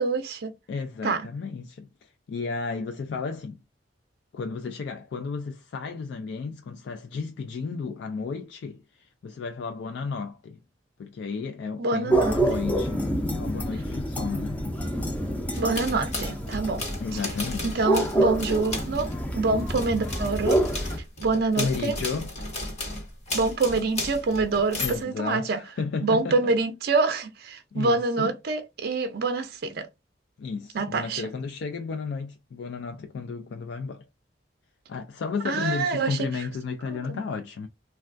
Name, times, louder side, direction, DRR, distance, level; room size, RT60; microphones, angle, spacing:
voice 1, 0.0-0.5 1.0-1.3 11.8-12.3 15.6-16.8 17.6-20.6 21.2-21.9 23.3-25.6 26.0-29.9 30.7-31.2 35.4-36.3 36.9-37.2, right 3 dB, 55° right, 0.5 m, -26 dB
voice 2, 0.7-3.6 4.3-10.6 11.0-14.9 17.0-17.9 21.5-22.3 24.8-26.5 27.7-28.3 30.4-34.1 34.9-37.7, left 4 dB, 65° left, 0.3 m, -33 dB
sound 1, 12.1-21.0, right 1 dB, 10° left, 0.5 m, -27 dB
sound 2, 15.5-19.2 19.6-25.0, left 2 dB, 40° left, 1.2 m, -34 dB
3.3 x 2.3 x 2.5 m
head